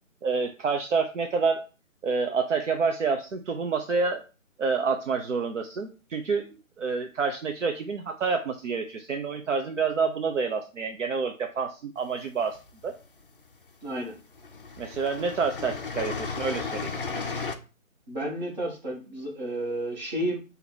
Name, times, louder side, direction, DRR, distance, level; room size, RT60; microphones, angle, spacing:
voice 1, 0.2-1.6 2.0-4.2 4.6-6.5 6.8-12.6 12.8-12.9 14.8-16.9, right 5 dB, 65° right, 4 dB, 0.7 m, -28 dB
sound 1, 12.2-13.0 13.9-14.0 14.3-17.6, left 4 dB, 45° left, 0.4 m, -34 dB
voice 2, 13.8-14.1 18.1-20.4, right 1 dB, 30° right, -2 dB, 1.6 m, -31 dB
4.4 x 2.8 x 4.0 m, 0.34 s
hypercardioid pair, 165°, 41 cm